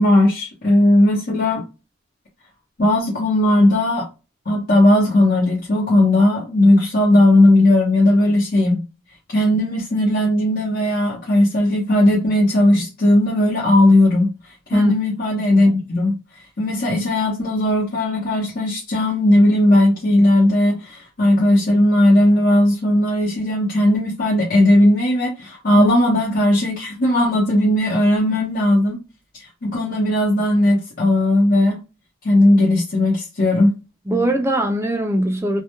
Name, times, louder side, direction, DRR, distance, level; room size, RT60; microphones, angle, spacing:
voice 1, 0.0-1.6 2.8-4.1 4.5-8.8 9.3-14.3 14.7-16.1 16.6-29.0 29.4-31.8 32.2-33.7, left 1 dB, 45° left, 0.7 m, -17 dB
voice 2, 34.1-35.6, right 1 dB, 15° right, 0.3 m, -21 dB
2.2 x 2.1 x 2.9 m
head